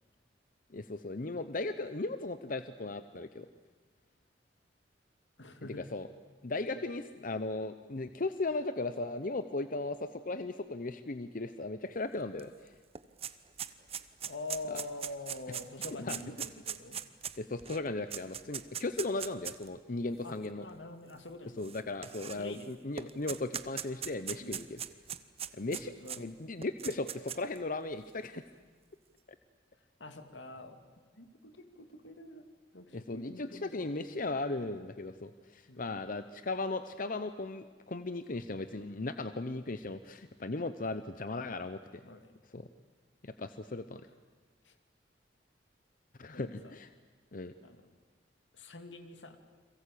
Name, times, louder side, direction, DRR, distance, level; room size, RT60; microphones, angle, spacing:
voice 1, 0.7-3.5 5.6-6.1 6.4-12.7 14.7-14.8 16.0-16.2 17.4-20.7 21.6-24.8 25.5-28.4 32.9-42.0 42.5-42.7 43.2-44.1 46.2-46.9 47.3-47.5, left 2 dB, 50° left, 11 dB, 0.8 m, -37 dB
voice 2, 5.4-5.9 6.7-6.8 14.3-17.0 20.2-21.6 22.2-22.7 24.4-24.7 25.7-26.3 30.0-30.8 31.1-32.5 32.7-34.2 35.7-35.9 42.0-42.3 44.6-44.7 46.3-46.7 47.6-47.9 48.5-49.4, left 2 dB, 90° left, 7 dB, 2.6 m, -46 dB
sound 1, 12.4-12.5 12.7-19.7 20.4-20.5 21.6-22.6 23.0-26.2 26.6-27.6, right 9 dB, 35° right, 1.0 m, -40 dB
30.0 x 22.5 x 8.5 m, 1.5 s
head